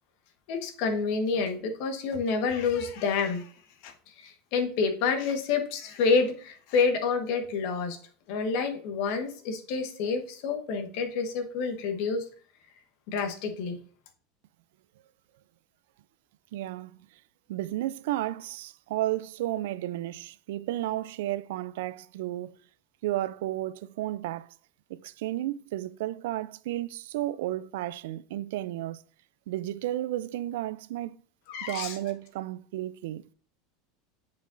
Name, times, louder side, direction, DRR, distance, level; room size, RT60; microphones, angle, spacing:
voice 1, 0.5-3.5 3.8-8.0 8.3-12.2 13.1-13.8 31.5-32.0, left 5 dB, 65° left, 1.3 m, -28 dB
voice 2, 16.5-17.1 17.5-22.6 23.0-24.5 24.9-29.0 29.5-31.2 31.6-33.2, right 14 dB, 80° right, 0.3 m, -33 dB
8.9 x 5.1 x 2.6 m
supercardioid pair, 130°, 0 cm